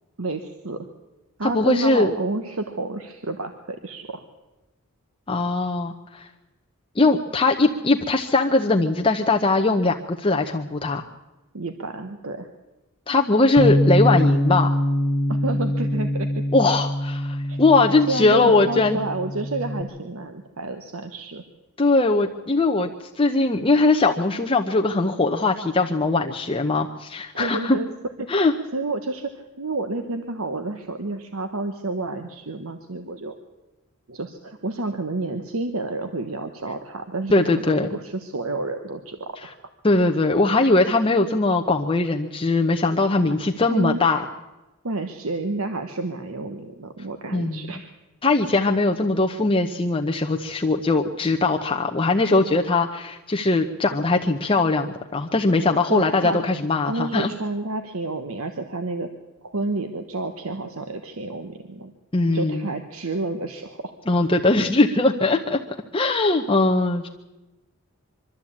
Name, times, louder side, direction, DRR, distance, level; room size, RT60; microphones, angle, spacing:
voice 1, 0.2-0.9 1.4-4.2 11.5-12.5 15.3-16.3 17.5-17.6 18.1-21.4 27.4-27.9 28.2-33.3 34.1-39.6 43.7-44.2 44.8-47.9 55.9-56.4 56.9-59.1 59.4-61.9 62.3-63.9 66.7-66.8, right 2 dB, 75° right, 7 dB, 1.2 m, -30 dB
voice 2, 1.4-2.1 5.3-6.3 7.0-11.0 13.1-14.7 16.5-19.0 21.8-22.9 23.2-27.8 28.3-28.5 37.3-37.9 39.4-39.5 39.8-44.2 47.3-47.7 48.2-57.3 62.1-62.7 64.1-65.6 65.9-67.1, left 3 dB, 25° left, 2 dB, 0.8 m, -20 dB
Bass guitar, 13.6-19.8, equal, 20° right, 1.6 m, -24 dB
23.5 x 13.0 x 8.6 m, 1.1 s
head